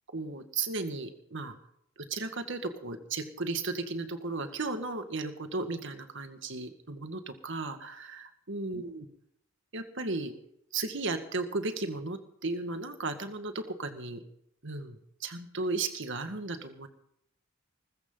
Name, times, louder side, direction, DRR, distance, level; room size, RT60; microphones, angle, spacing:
voice 1, 0.1-1.6 2.0-9.1 9.7-10.3 10.7-14.2 14.6-16.9, right 3 dB, 60° right, 7 dB, 1.9 m, -35 dB
21.0 x 14.0 x 4.0 m, 0.71 s
head